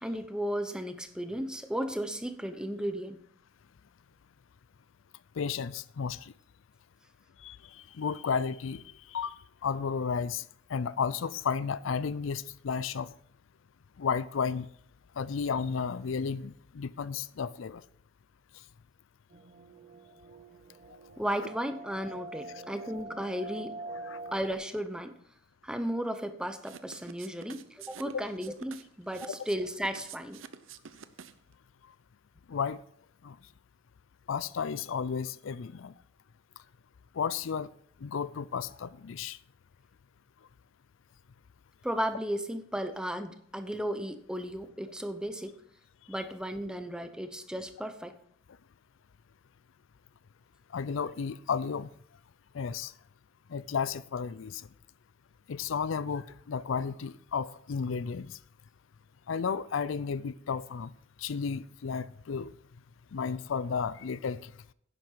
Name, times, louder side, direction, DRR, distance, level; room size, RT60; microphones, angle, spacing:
voice 1, 0.0-3.2 21.2-23.8 24.3-25.1 25.6-30.4 41.8-45.6 46.1-48.2, equal, 5° right, 0.8 m, -34 dB
voice 2, 5.4-6.3 7.4-7.6 8.0-8.8 9.1-9.4 9.6-10.4 10.7-13.1 14.0-14.7 15.2-17.8 24.1-24.2 28.1-28.2 32.5-32.8 33.2-33.4 34.3-35.9 37.2-37.7 38.0-39.4 50.7-51.9 52.5-52.9 53.5-54.6 55.5-58.4 59.3-60.9 61.2-62.5 63.1-64.5, left 6 dB, 70° left, 0.4 m, -33 dB
sound 1, 19.3-24.5, right 2 dB, 35° right, 0.7 m, -45 dB
sound 2, 26.6-31.5, right 7 dB, 75° right, 0.7 m, -48 dB
10.5 x 7.6 x 5.7 m
head